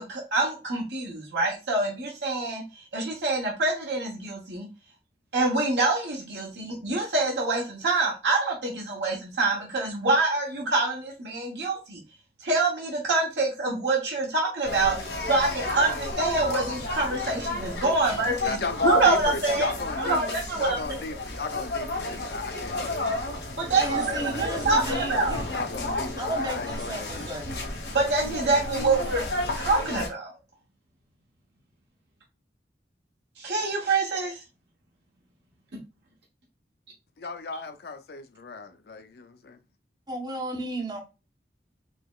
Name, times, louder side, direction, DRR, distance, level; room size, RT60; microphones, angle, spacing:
voice 1, 0.0-2.6 2.9-4.7 5.3-12.0 12.4-18.6 18.8-19.7 20.0-21.0 23.6-24.8 25.1-25.4 27.9-29.3 29.5-30.3 33.4-34.4, right 3 dB, 75° right, 0.9 m, -26 dB
sound 1, 14.6-30.1, left 2 dB, 85° left, 1.5 m, -32 dB
voice 2, 18.4-23.3 23.8-27.3 37.2-39.6, left 4 dB, 65° left, 0.5 m, -36 dB
voice 3, 23.8-25.4 26.2-27.8 40.1-41.0, right 1 dB, 20° right, 0.5 m, -34 dB
4.6 x 2.9 x 2.3 m
head